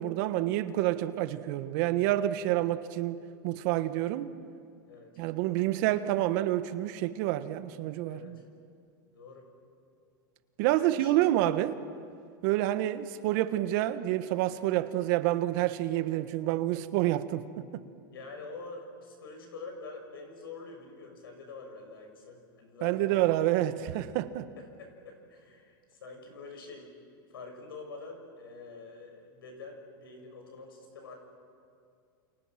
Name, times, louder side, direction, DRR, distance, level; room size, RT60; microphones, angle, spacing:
voice 1, 0.0-4.3 5.2-8.4 10.6-11.8 12.4-17.5 17.7-17.8 22.8-24.5, right 14 dB, 60° right, 1.4 m, -28 dB
voice 2, 4.9-5.2 8.1-8.4 9.1-9.5 10.6-11.3 18.1-23.6 24.6-26.9 27.3-31.2, left 3 dB, 90° left, 6.4 m, -46 dB
29.5 x 28.5 x 6.0 m
hypercardioid pair, 115°, 12 cm